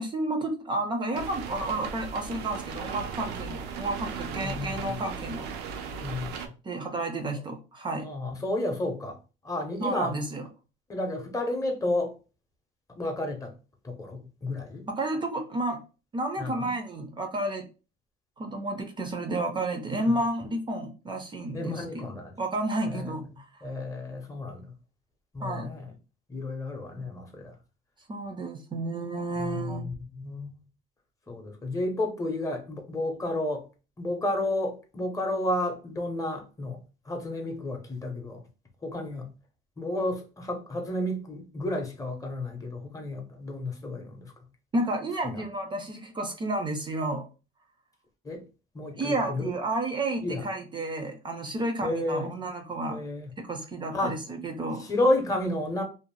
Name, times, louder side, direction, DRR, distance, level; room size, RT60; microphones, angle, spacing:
voice 1, 0.0-5.5 6.6-8.1 9.8-10.4 14.9-15.8 16.1-17.7 18.4-22.0 22.4-23.5 25.4-25.7 28.1-29.9 44.7-47.3 49.0-53.0 53.4-54.8, right 2 dB, 30° right, 0.5 m, -31 dB
sound 1, 1.1-6.5, right 6 dB, 80° right, 0.5 m, -37 dB
voice 2, 4.3-5.0 5.9-6.5 8.0-9.2 9.4-10.2 10.9-12.2 12.9-13.5 13.8-14.9 16.4-16.7 19.9-20.2 21.5-22.3 22.9-24.7 25.3-25.9 26.3-27.6 29.4-30.6 31.3-33.7 34.0-36.8 37.0-38.4 38.8-39.3 39.8-44.3 45.2-45.4 48.2-48.4 48.7-49.5 50.2-50.4 51.8-52.3 52.9-53.3 53.9-54.2 54.7-55.8, left 1 dB, 20° left, 0.7 m, -31 dB
2.5 x 2.0 x 3.1 m
cardioid pair, 115°, 17 cm